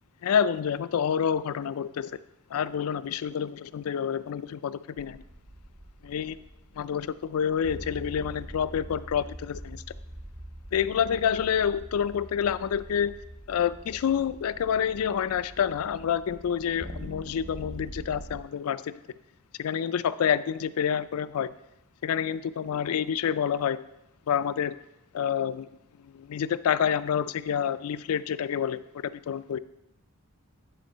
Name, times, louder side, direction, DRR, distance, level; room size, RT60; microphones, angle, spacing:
voice 1, 0.2-2.2 2.5-5.2 6.0-6.4 6.8-9.8 10.7-13.2 13.5-19.0 19.6-21.5 22.0-23.8 24.3-24.8 25.1-25.7 26.0-29.6, left 8 dB, 75° left, 15 dB, 0.3 m, -28 dB
sound 1, 5.0-18.4, right 1 dB, 30° right, 0.6 m, -44 dB
10.0 x 3.7 x 5.5 m, 0.89 s
head